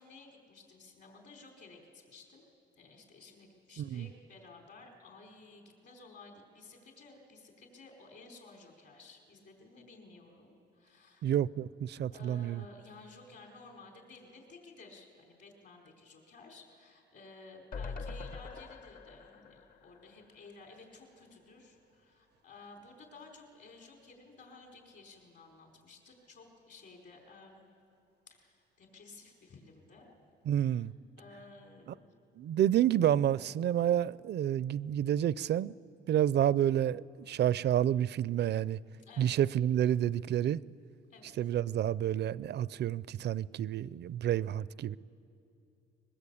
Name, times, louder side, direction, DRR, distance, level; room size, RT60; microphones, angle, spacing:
voice 1, 0.0-2.5 2.8-11.3 12.1-27.6 28.3-30.1 30.7-30.8 31.2-32.1 39.0-39.4 41.1-41.3, left 3 dB, 60° left, 4.8 m, -55 dB
voice 2, 11.2-12.6 30.5-30.9 32.4-35.8 36.1-38.8 39.2-40.6 41.4-45.0, right 11 dB, 60° right, 0.5 m, -29 dB
sound 1, 17.7-21.0 21.3-21.4 21.6-21.7, left 4 dB, 45° left, 1.0 m, -44 dB
22.0 x 21.5 x 8.5 m
cardioid pair, 90°, 20 cm